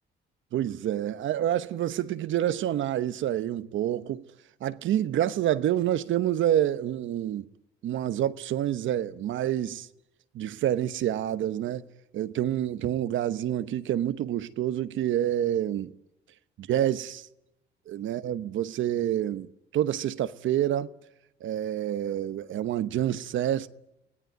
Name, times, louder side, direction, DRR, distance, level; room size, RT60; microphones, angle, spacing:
voice 1, 0.5-4.2 4.6-7.5 7.8-9.9 10.3-11.8 12.1-15.9 16.6-17.3 17.9-20.9 21.4-23.7, right 11 dB, 75° right, 1.0 m, -28 dB
25.5 x 18.0 x 9.2 m
cardioid pair, 90°, 20 cm